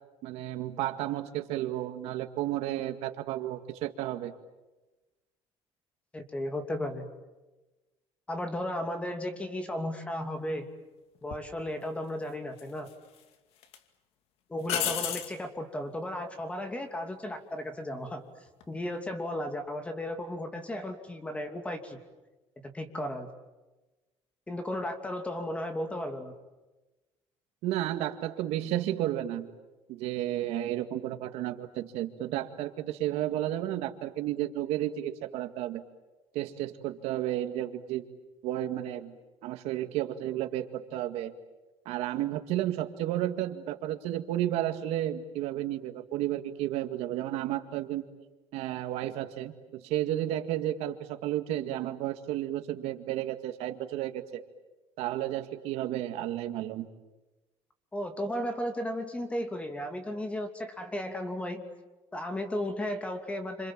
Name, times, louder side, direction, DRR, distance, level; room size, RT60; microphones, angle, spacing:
voice 1, 0.2-4.3 27.6-29.5 29.9-35.8 36.3-38.1 38.4-39.1 39.4-41.3 41.9-48.0 48.5-54.2 55.0-56.9, right 13 dB, 80° right, 8 dB, 2.0 m, -32 dB
voice 2, 6.1-7.1 8.3-10.7 11.2-12.9 14.5-18.2 18.7-22.0 22.7-23.3 24.5-26.3 57.9-61.7 62.1-63.7, left 1 dB, 10° left, 6 dB, 2.7 m, -34 dB
sound 1, 11.3-11.5 12.6-13.2 13.6-13.8 14.7-15.4 18.5-18.8, left 9 dB, 70° left, 2.4 m, -32 dB
29.0 x 27.0 x 7.6 m, 1.1 s
cardioid pair, 160°, 10 cm